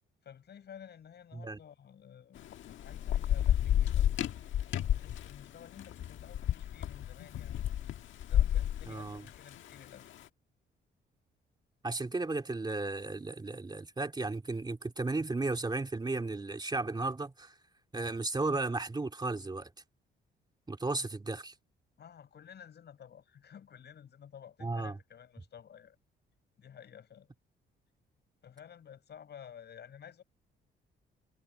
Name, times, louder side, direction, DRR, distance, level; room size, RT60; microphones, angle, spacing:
voice 1, 0.2-2.4 2.8-4.2 4.6-7.7 8.3-10.1 22.0-26.0 26.6-27.3 28.4-30.2, left 8 dB, 60° left, 7.3 m, -53 dB
Thunder / Rain, 2.4-10.0, left 11 dB, 75° left, 1.6 m, -31 dB
voice 2, 8.9-9.2 11.8-17.5 17.9-19.7 20.7-21.5 24.6-25.0, right 3 dB, 20° right, 2.8 m, -34 dB
cardioid pair, 90°, 20 cm